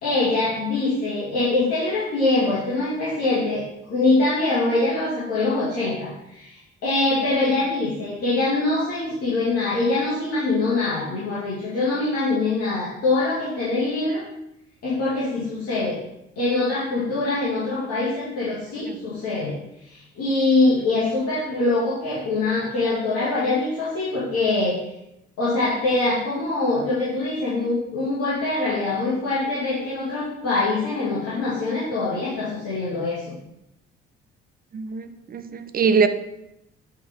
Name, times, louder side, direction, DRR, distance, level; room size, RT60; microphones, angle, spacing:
voice 1, 0.0-3.6 3.9-14.2 14.8-16.0 16.4-19.6 19.8-24.8 25.4-33.4, left 2 dB, 50° left, 2.1 m, -23 dB
voice 2, 34.7-36.1, right 5 dB, 30° right, 0.7 m, -22 dB
8.5 x 3.8 x 3.6 m
figure-of-eight pair, 45°, 31 cm